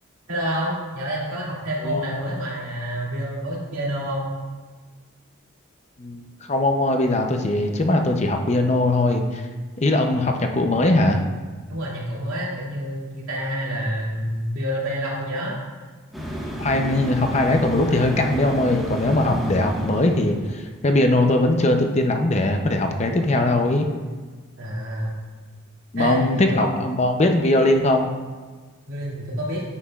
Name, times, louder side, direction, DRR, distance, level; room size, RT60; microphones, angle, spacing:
voice 1, 0.3-4.2 10.1-10.2 11.7-15.6 24.6-25.1 26.0-27.0 28.9-29.6, equal, 90° right, -6 dB, 2.5 m, -28 dB
voice 2, 1.8-2.3 6.0-6.2 6.5-9.5 9.8-11.2 16.6-23.9 25.9-28.1, left 2 dB, 35° left, 4 dB, 0.6 m, -20 dB
sound 1, 16.1-20.6, right 1 dB, ahead, 1.4 m, -31 dB
9.8 x 7.6 x 2.4 m, 1.4 s
head